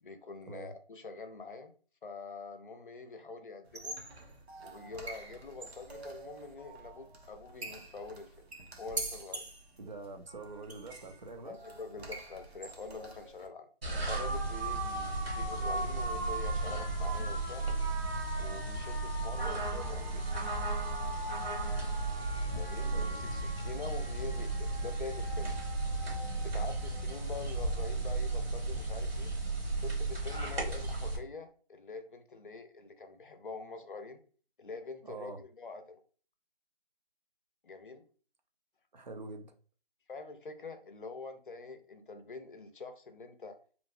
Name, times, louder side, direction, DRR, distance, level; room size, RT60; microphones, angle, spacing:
voice 1, 0.0-1.7 2.0-4.0 4.6-8.3 8.8-9.4 11.4-13.7 14.1-17.7 18.4-20.5 22.5-25.5 26.4-29.3 29.8-34.2 34.6-36.0 37.6-38.0 40.1-43.6, left 4 dB, 55° left, 0.6 m, -45 dB
sound 1, 3.6-13.5, right 2 dB, 85° right, 0.9 m, -45 dB
voice 2, 9.8-11.6 22.8-23.4 35.0-35.4 38.9-39.5, right 3 dB, 45° right, 0.5 m, -45 dB
sound 2, 13.8-31.2, right 2 dB, 70° right, 1.2 m, -34 dB
2.9 x 2.1 x 2.6 m
figure-of-eight pair, 165°, 31 cm